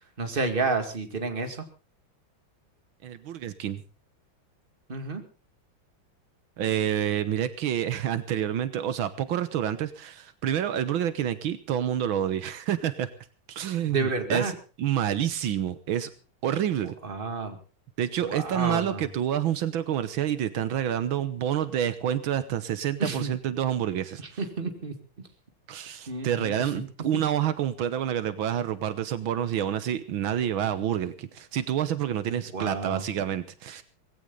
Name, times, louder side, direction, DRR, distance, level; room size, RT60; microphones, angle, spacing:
voice 1, 0.2-1.6 4.9-5.2 13.9-14.5 17.0-17.6 18.2-19.0 23.0-23.3 24.4-24.9 26.1-26.5 32.5-33.0, right 3 dB, 25° right, 7 dB, 2.2 m, -30 dB
voice 2, 3.0-3.8 6.6-13.1 13.5-14.5 14.8-16.1 16.4-16.9 18.0-24.4 25.7-33.8, right 10 dB, 80° right, 13 dB, 1.8 m, -28 dB
19.0 x 16.5 x 3.9 m, 0.35 s
omnidirectional pair, 2.2 m